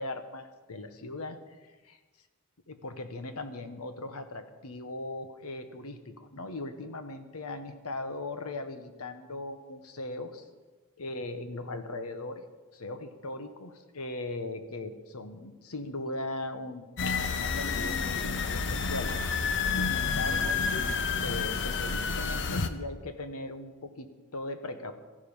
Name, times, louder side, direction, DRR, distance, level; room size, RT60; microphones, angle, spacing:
voice 1, 0.0-1.6 1.8-2.0 2.7-10.4 11.0-12.4 12.7-19.1 19.7-24.9, left 2 dB, 75° left, 9 dB, 1.2 m, -39 dB
sound 1, 17.0-22.7, left 5 dB, 55° left, 0.8 m, -29 dB
14.5 x 11.5 x 5.6 m, 1.3 s
head